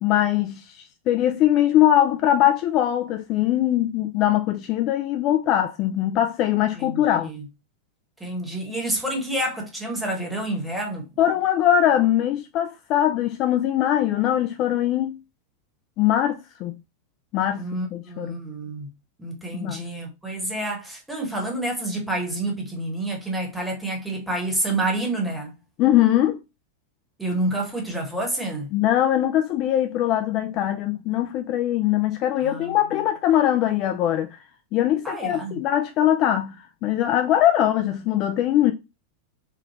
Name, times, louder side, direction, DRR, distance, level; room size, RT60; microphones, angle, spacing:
voice 1, 0.0-7.3 11.2-15.2 16.0-16.7 17.3-17.7 17.9-18.3 19.5-19.9 25.8-26.4 28.7-34.3 34.7-38.7, left 12 dB, 40° left, 0.3 m, -21 dB
voice 2, 6.7-7.4 8.2-11.1 17.6-18.9 19.2-25.5 27.2-28.7 32.4-32.8 35.0-35.6, right 1 dB, 5° right, 1.1 m, -28 dB
3.6 x 2.2 x 2.9 m
figure-of-eight pair, 90°, 0 cm